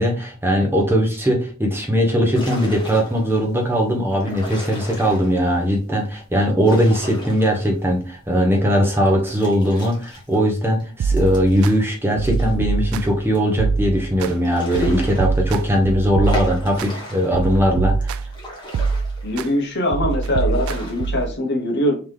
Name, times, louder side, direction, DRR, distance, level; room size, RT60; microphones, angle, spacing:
voice 1, 0.0-18.2, equal, 10° right, 1 dB, 0.7 m, -19 dB
sound 1, 2.3-3.4 4.1-5.5 6.4-8.0 8.3-8.4 9.3-12.5 12.9-13.0 13.3-13.4 14.2-15.8 16.2-17.5 18.0-19.6 20.1-21.2, equal, 20° left, 1.3 m, -35 dB
sound 2, 11.0-11.7 12.2-13.2 13.6-14.3 14.7-16.9 17.3-18.4 18.7-19.5 19.9-21.3, right 5 dB, 85° right, 0.3 m, -24 dB
voice 2, 19.2-22.0, left 1 dB, 55° left, 2 dB, 1.0 m, -22 dB
3.7 x 2.9 x 3.2 m, 0.36 s
head